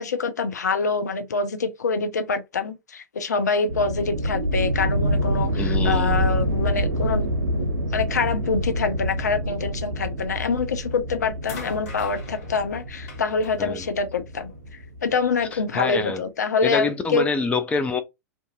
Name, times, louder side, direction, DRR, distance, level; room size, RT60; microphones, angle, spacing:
voice 1, 0.0-7.3 7.6-17.2, left 4 dB, 75° left, 0.4 m, -26 dB
sound 1, 3.7-15.1, equal, 80° right, 0.6 m, -26 dB
voice 2, 5.6-6.4 13.6-13.8 15.5-16.2 16.6-18.0, left 4 dB, 15° left, 0.4 m, -26 dB
sound 2, 10.5-10.9 11.4-14.7 15.7-15.8, left 4 dB, 55° left, 1.0 m, -43 dB
2.5 x 2.5 x 2.3 m
figure-of-eight pair, 95°, 9 cm